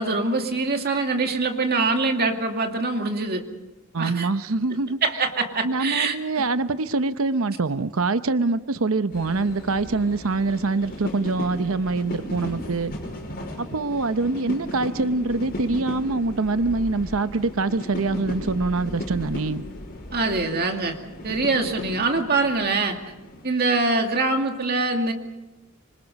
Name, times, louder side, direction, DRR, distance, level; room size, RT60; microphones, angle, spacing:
voice 1, 0.0-3.4 4.0-4.3 5.0-6.4 20.1-21.0 21.2-23.0 23.4-25.1, right 3 dB, 50° right, 4 dB, 2.4 m, -24 dB
voice 2, 3.9-5.0 5.6-12.9 13.6-19.6, right 3 dB, 85° right, 12 dB, 0.8 m, -24 dB
sound 1, 9.1-23.5, left 1 dB, 50° left, 5.7 m, -36 dB
26.0 x 25.0 x 5.4 m, 1.0 s
head